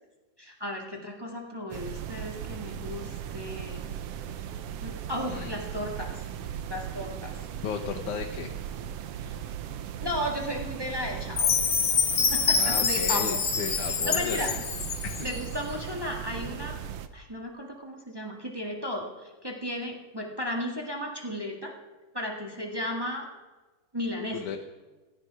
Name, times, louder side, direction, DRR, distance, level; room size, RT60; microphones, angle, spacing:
voice 1, 0.4-3.9 4.8-6.2 6.7-7.4 9.2-9.3 10.0-11.6 12.2-14.5 15.2-16.8 17.1-21.8 22.1-23.3 23.9-24.4, left 1 dB, 15° right, 0 dB, 1.1 m, -34 dB
sound 1, 1.7-17.1, right 9 dB, 70° right, 1.5 m, -37 dB
voice 2, 5.3-5.6 7.6-8.5 12.6-14.4 15.0-15.3 24.3-24.6, left 8 dB, 75° left, 2 dB, 2.3 m, -35 dB
Chime, 11.4-15.4, left 6 dB, 45° left, 1.3 m, -26 dB
16.0 x 14.5 x 4.9 m, 1.2 s
omnidirectional pair, 3.5 m